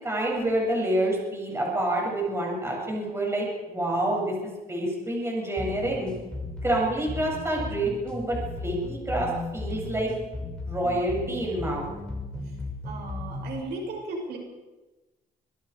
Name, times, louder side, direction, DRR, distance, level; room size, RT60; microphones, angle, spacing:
voice 1, 0.0-4.3 4.7-6.1 6.6-10.1 10.7-11.9, right 1 dB, 15° right, -2 dB, 7.5 m, -27 dB
sound 1, 5.6-13.6, left 2 dB, 5° left, 6.0 m, -36 dB
voice 2, 12.8-14.4, right 2 dB, 85° right, 0 dB, 6.4 m, -35 dB
25.5 x 20.5 x 4.9 m, 1.1 s
cardioid pair, 140°, 17 cm